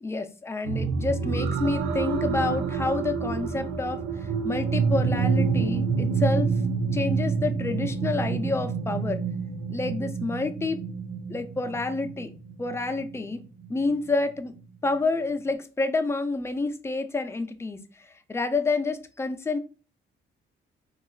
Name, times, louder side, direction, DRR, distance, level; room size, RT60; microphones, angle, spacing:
voice 1, 0.0-6.5 6.9-9.2 9.7-10.8 11.3-12.3 12.6-13.4 13.7-14.5 14.8-19.6, left 3 dB, 15° left, 8 dB, 0.4 m, -28 dB
sound 1, 0.6-14.0 14.6-14.7, right 5 dB, 80° right, 0.6 m, -28 dB
4.1 x 2.3 x 2.3 m, 0.35 s
cardioid pair, 90°, 20 cm